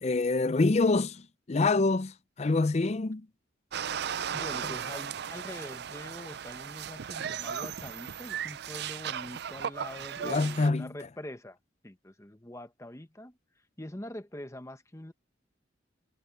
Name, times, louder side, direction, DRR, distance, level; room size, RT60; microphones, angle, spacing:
voice 1, 0.0-3.3 10.2-10.9, left 3 dB, 35° left, 0.5 m, -26 dB
sound 1, 3.7-10.7, right 8 dB, 55° right, 0.4 m, -36 dB
voice 2, 4.3-11.6 11.8-13.4 13.8-15.1, left 1 dB, 15° left, 1.1 m, -44 dB
head